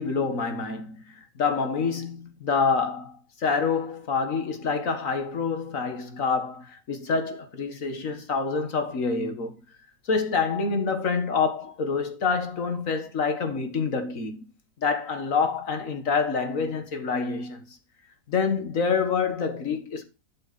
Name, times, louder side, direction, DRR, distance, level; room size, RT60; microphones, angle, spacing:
voice 1, 0.0-9.6 10.1-14.5 14.8-17.7 18.3-20.0, left 5 dB, 55° left, 2.0 m, -27 dB
12.0 x 6.6 x 4.2 m
omnidirectional pair, 1.7 m